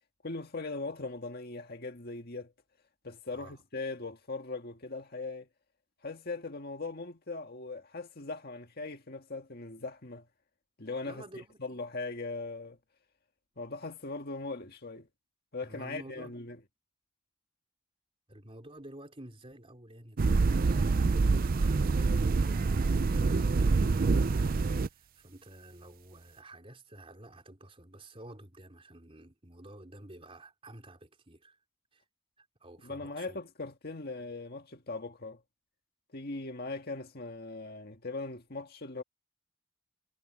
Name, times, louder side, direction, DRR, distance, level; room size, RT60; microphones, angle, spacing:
voice 1, 0.2-2.5 3.0-5.5 6.0-10.3 10.8-11.2 11.6-12.8 13.6-15.1 15.5-16.6 32.8-35.4 36.1-39.0, left 3 dB, 50° left, 1.9 m, -39 dB
voice 2, 3.3-3.6 11.0-11.8 15.6-16.3 18.3-31.6 31.9-32.0 32.4-33.4, right 1 dB, 25° right, 3.9 m, -51 dB
sound 1, 20.2-24.9, right 4 dB, 45° right, 0.4 m, -26 dB
head